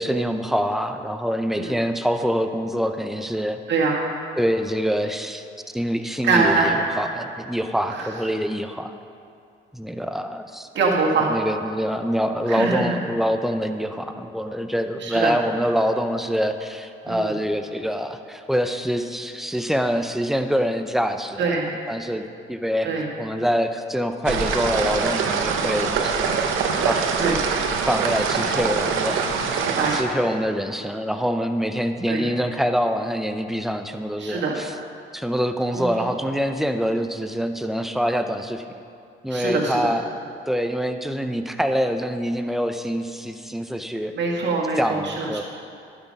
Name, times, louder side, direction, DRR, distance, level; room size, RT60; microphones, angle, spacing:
voice 1, 0.0-3.6 4.4-5.5 5.7-8.9 9.7-10.7 11.3-21.6 21.9-22.9 23.2-26.3 26.9-27.1 27.9-29.7 29.9-34.7 35.1-38.6 39.2-40.1 40.5-44.1 44.8-45.4, equal, ahead, 7 dB, 0.6 m, -25 dB
voice 2, 6.2-6.8 7.9-8.1 10.7-11.3 12.5-13.0 15.0-15.4 17.1-17.3 21.4-21.7 22.8-23.1 27.2-27.4 29.6-30.0 32.1-32.2 34.2-34.6 35.7-36.1 39.3-39.9 44.1-45.4, right 4 dB, 65° right, -2 dB, 1.9 m, -23 dB
sound 1, 24.2-30.0, right 5 dB, 85° right, 0.8 m, -24 dB
12.0 x 6.1 x 5.3 m, 2.5 s
cardioid pair, 90°, 20 cm